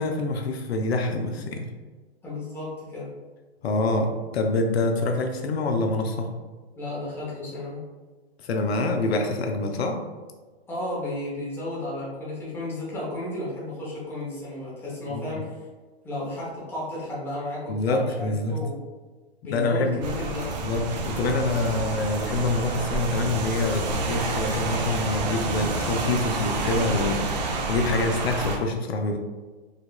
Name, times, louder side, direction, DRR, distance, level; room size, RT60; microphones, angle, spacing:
voice 1, 0.0-1.7 3.6-6.3 8.4-10.0 15.1-15.3 17.7-18.6 19.5-20.0 20.6-29.2, left 2 dB, 70° left, 4 dB, 0.6 m, -26 dB
voice 2, 2.2-3.1 6.8-7.8 10.7-15.7 16.0-18.8 19.4-20.6, left 1 dB, 5° left, -7 dB, 0.8 m, -33 dB
Rain, 20.0-28.6, right 3 dB, 40° right, 0.5 m, -29 dB
5.0 x 2.3 x 2.2 m, 1.4 s
hypercardioid pair, 140°, 32 cm